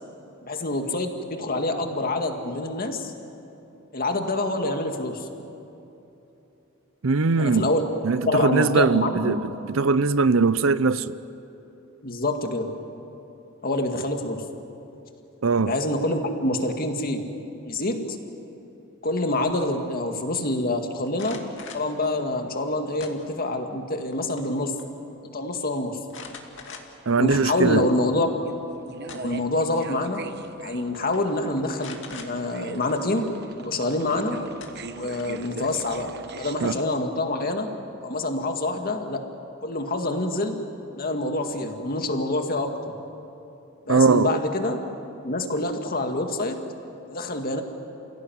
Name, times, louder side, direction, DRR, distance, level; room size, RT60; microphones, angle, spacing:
voice 1, 0.4-3.1 3.9-5.3 7.4-7.8 8.3-9.4 12.0-12.7 13.6-14.4 15.6-17.2 17.6-18.2 19.0-21.4 21.7-24.7 25.2-26.0 27.2-28.3 29.1-30.2 30.6-33.3 33.6-34.4 34.9-37.7 38.0-39.2 39.6-40.6 41.0-42.8 43.9-44.8 45.2-46.6 47.1-47.6, left 2 dB, 45° left, 2.1 m, -26 dB
voice 2, 7.0-7.7 8.0-11.2 15.4-15.7 27.1-27.8 36.6-36.7 43.9-44.4, right 4 dB, 75° right, 0.7 m, -21 dB
sound 1, 21.1-21.9 23.0-23.6 24.0-24.5 24.8-24.9 26.1-27.1 27.6-27.7 28.8-29.5 30.5-30.6 30.9-31.2 31.8-32.3 34.1-34.2 34.6-35.4, left 5 dB, 65° left, 2.5 m, -42 dB
sound 2, 28.4-36.8, right 4 dB, 55° right, 1.0 m, -41 dB
28.5 x 17.0 x 9.3 m
head